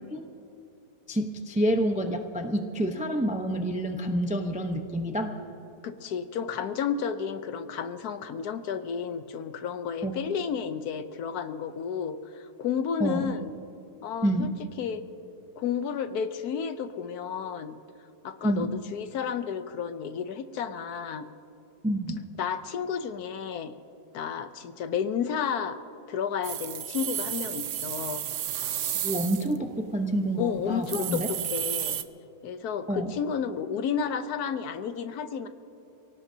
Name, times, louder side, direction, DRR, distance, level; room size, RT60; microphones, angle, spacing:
voice 1, 1.1-5.3 10.0-10.1 13.0-13.3 14.2-14.5 18.4-18.7 21.8-22.2 29.0-31.3 32.9-33.1, right 1 dB, 10° right, 4 dB, 0.4 m, -28 dB
voice 2, 5.8-13.5 14.0-14.5 14.8-15.0 15.6-17.8 18.2-21.3 22.4-23.7 24.1-25.8 26.1-28.2 30.4-32.0 32.4-35.5, left 7 dB, 70° left, 10 dB, 1.2 m, -32 dB
sound 1, 26.4-29.6 30.1-30.2 30.5-30.6 30.8-32.0, right 10 dB, 65° right, 0.8 m, -32 dB
29.0 x 17.5 x 2.8 m, 2.8 s
omnidirectional pair, 1.8 m